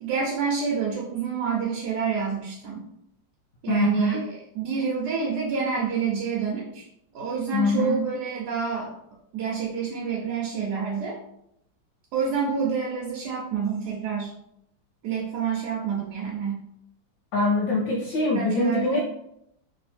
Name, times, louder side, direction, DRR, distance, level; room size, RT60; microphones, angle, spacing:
voice 1, 0.0-2.8 3.6-6.9 7.1-8.9 9.3-11.2 12.1-14.3 15.0-16.6 18.2-19.0, right 6 dB, 65° right, -4 dB, 1.3 m, -28 dB
voice 2, 3.7-4.2 7.5-8.0 17.3-19.0, left 3 dB, 80° left, -3 dB, 1.4 m, -23 dB
3.5 x 2.8 x 4.2 m, 0.77 s
omnidirectional pair, 2.0 m